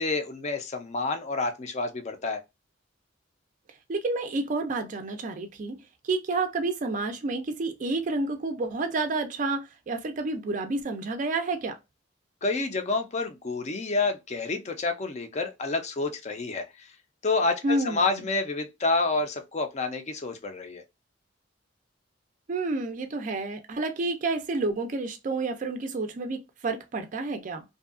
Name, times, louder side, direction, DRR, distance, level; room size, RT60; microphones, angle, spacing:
voice 1, 0.0-2.4 12.4-16.9 17.2-20.8, left 3 dB, 35° left, 0.5 m, -29 dB
voice 2, 3.9-5.8 6.0-11.8 17.6-18.2 22.5-27.6, right 3 dB, 40° right, 0.4 m, -29 dB
2.6 x 2.3 x 2.4 m
head